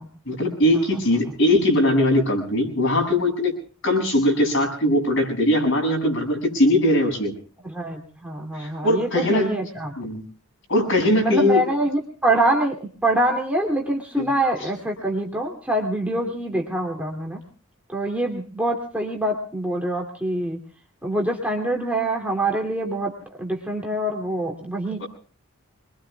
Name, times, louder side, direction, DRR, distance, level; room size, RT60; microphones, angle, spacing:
voice 1, 0.3-3.5 3.8-7.3 8.5-9.5 10.0-10.2 10.7-11.6 14.2-14.3 25.0-25.1, left 1 dB, 65° left, 1 dB, 7.6 m, -20 dB
voice 2, 7.6-9.9 11.2-17.4 17.9-20.6 21.0-25.0, right 1 dB, 5° right, 1 dB, 2.6 m, -25 dB
27.5 x 22.5 x 2.3 m, 0.39 s
head